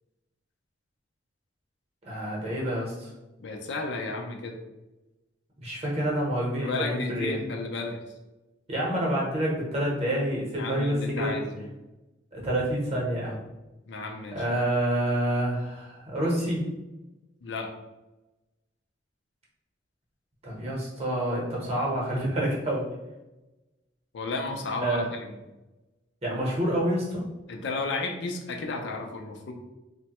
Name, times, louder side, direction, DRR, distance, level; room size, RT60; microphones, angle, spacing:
voice 1, 2.0-3.1 5.6-7.4 8.7-11.3 12.3-13.4 14.3-16.6 20.4-22.9 24.8-25.1 26.2-27.2, right 1 dB, 35° right, -4 dB, 0.8 m, -28 dB
voice 2, 3.4-4.6 6.6-8.0 10.6-11.7 13.9-14.5 17.4-17.7 24.1-25.4 27.5-29.5, left 3 dB, 65° left, 2 dB, 0.4 m, -33 dB
3.0 x 2.1 x 2.9 m, 1.0 s
head